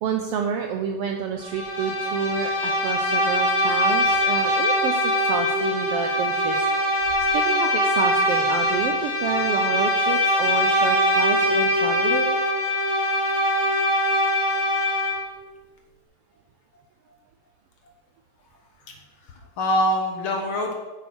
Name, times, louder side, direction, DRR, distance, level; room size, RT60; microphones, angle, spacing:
voice 1, 0.0-7.1 7.3-12.4, right 7 dB, 80° right, 4 dB, 1.4 m, -29 dB
Bowed string instrument, 1.4-15.3, left 1 dB, 30° right, 2.2 m, -22 dB
voice 2, 19.2-20.8, left 1 dB, 60° left, 2 dB, 1.5 m, -25 dB
8.2 x 7.2 x 6.1 m, 1.3 s
omnidirectional pair, 3.4 m